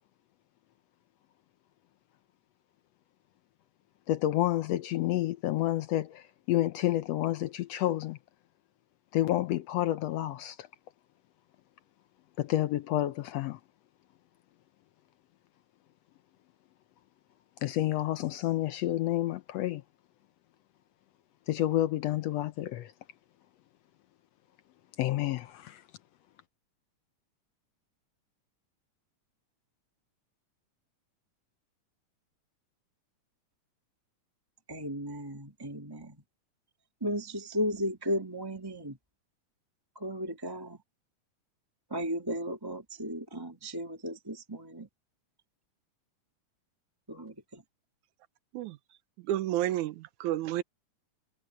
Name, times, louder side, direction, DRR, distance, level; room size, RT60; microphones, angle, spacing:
voice 1, 4.1-8.2 9.1-10.7 12.4-13.6 17.6-19.8 21.5-22.9 25.0-25.8, left 14 dB, 75° left, 1.5 m, -29 dB
voice 2, 34.7-36.2 37.0-39.0 39.9-40.8 41.9-44.9 47.1-47.6 48.9-49.0, equal, 10° right, 2.3 m, -35 dB
voice 3, 49.3-50.6, right 13 dB, 80° right, 2.2 m, -30 dB
omnidirectional pair, 3.5 m